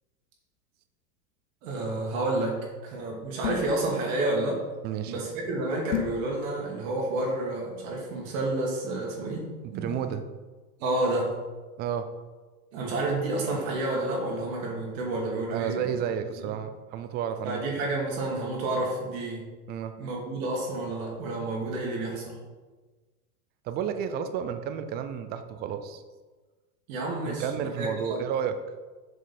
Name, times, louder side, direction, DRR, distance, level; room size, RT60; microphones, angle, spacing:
voice 1, 1.6-2.5 2.8-4.6 5.1-9.4 9.7-10.1 10.8-11.3 12.7-15.9 16.4-16.5 17.4-19.4 20.0-22.4 26.9-28.2, right 2 dB, 60° right, -2 dB, 2.3 m, -30 dB
sound 1, 3.4-3.8 5.9-6.2, left 11 dB, 60° left, 1.0 m, -30 dB
voice 2, 9.6-10.2 11.8-12.1 15.5-17.6 19.7-19.9 23.6-26.0 27.2-28.6, right 8 dB, 25° right, 9 dB, 0.4 m, -31 dB
7.4 x 5.3 x 4.3 m, 1.3 s
hypercardioid pair, 120°, 46 cm